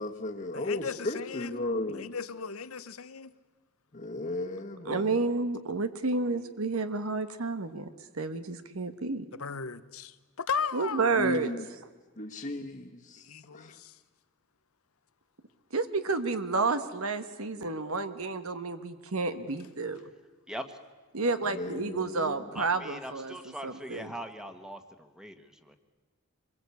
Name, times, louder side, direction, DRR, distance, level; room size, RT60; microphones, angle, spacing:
voice 1, 0.0-2.1 3.9-5.2 11.2-11.6 12.2-13.2 13.5-13.7 21.6-22.3, left 2 dB, 40° left, 1.4 m, -35 dB
voice 2, 0.5-3.3 9.3-11.1 13.2-14.0, left 6 dB, 90° left, 1.0 m, -36 dB
voice 3, 4.8-7.9 8.1-9.2 10.7-11.5 15.7-20.0 21.1-23.3 23.6-24.1, right 3 dB, 85° right, 1.3 m, -30 dB
voice 4, 20.5-20.8 22.5-25.8, equal, 5° right, 1.4 m, -41 dB
25.5 x 22.0 x 8.4 m
head